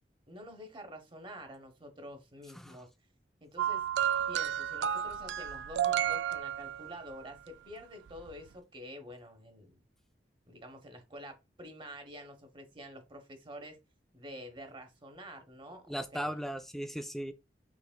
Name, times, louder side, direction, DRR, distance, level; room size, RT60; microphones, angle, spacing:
voice 1, 0.3-2.9 3.4-3.9 4.3-9.8 10.5-13.8 14.1-16.4, equal, 30° right, 1.0 m, -48 dB
sound 1, 3.6-7.1 8.2-8.3, right 10 dB, 75° right, 0.3 m, -32 dB
voice 2, 15.9-17.3, equal, ahead, 0.3 m, -37 dB
6.1 x 3.3 x 2.2 m
head